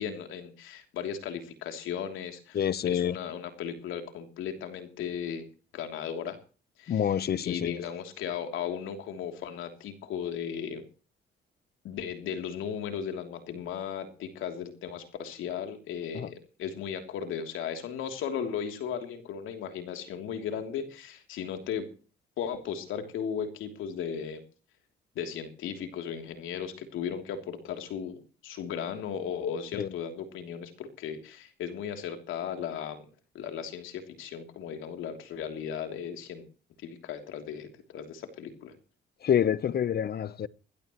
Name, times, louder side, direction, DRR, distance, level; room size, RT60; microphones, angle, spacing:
voice 1, 0.0-5.5 5.7-6.4 6.8-7.1 7.4-10.9 11.8-16.3 16.6-21.9 22.4-24.4 25.1-33.0 33.3-36.5 36.8-38.7, left 8 dB, 85° left, 3.1 m, -36 dB
voice 2, 2.5-3.1 6.9-7.8 16.1-16.3 29.8-29.9 39.2-40.5, left 9 dB, 55° left, 0.9 m, -27 dB
20.5 x 17.0 x 3.1 m
cardioid pair, 90°, 20 cm